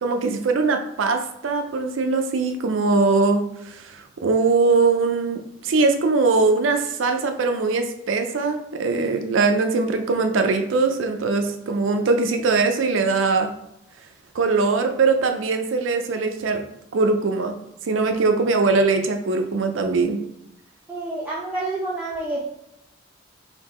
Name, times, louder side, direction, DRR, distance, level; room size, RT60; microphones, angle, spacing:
voice 1, 0.0-13.5 14.3-16.6 16.9-17.6 17.9-20.2, right 3 dB, 80° right, 6 dB, 0.5 m, -21 dB
voice 2, 20.9-22.4, right 2 dB, 10° right, -6 dB, 0.5 m, -28 dB
3.5 x 2.7 x 4.2 m, 0.84 s
head